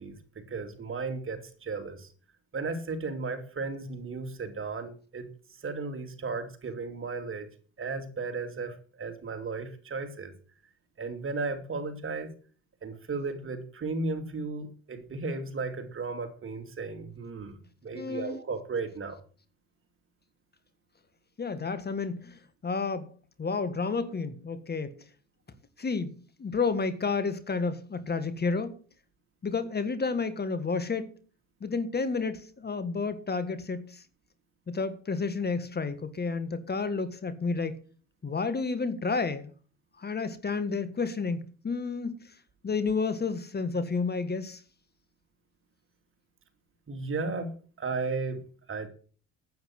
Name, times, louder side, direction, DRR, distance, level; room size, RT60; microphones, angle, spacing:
voice 1, 0.0-2.1 2.5-5.3 5.6-7.5 7.8-10.3 11.0-12.3 12.8-19.2 46.9-48.4 48.7-48.9, right 4 dB, 40° right, 2.7 m, -35 dB
voice 2, 17.9-18.3 21.4-23.1 23.4-25.0 25.8-26.1 26.4-28.8 29.4-31.1 31.6-34.0 34.7-37.8 38.2-39.5 40.0-42.3 42.6-44.6, left 4 dB, 30° left, 1.6 m, -31 dB
9.4 x 8.8 x 7.9 m
supercardioid pair, 75°, 34 cm